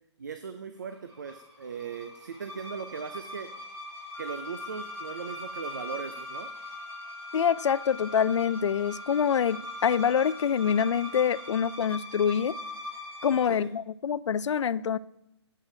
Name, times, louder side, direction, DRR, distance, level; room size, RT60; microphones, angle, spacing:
voice 1, 0.2-3.5 4.2-6.5 13.5-13.7, right 6 dB, 40° right, 9 dB, 0.4 m, -38 dB
sound 1, 0.9-13.6, left 1 dB, 60° right, 2.0 m, -42 dB
sound 2, 4.1-11.7, left 3 dB, 10° left, 1.9 m, -46 dB
voice 2, 7.3-12.5 13.2-15.0, left 7 dB, 80° left, 19 dB, 0.4 m, -26 dB
12.0 x 8.3 x 2.7 m, 0.81 s
hypercardioid pair, 180°, 15 cm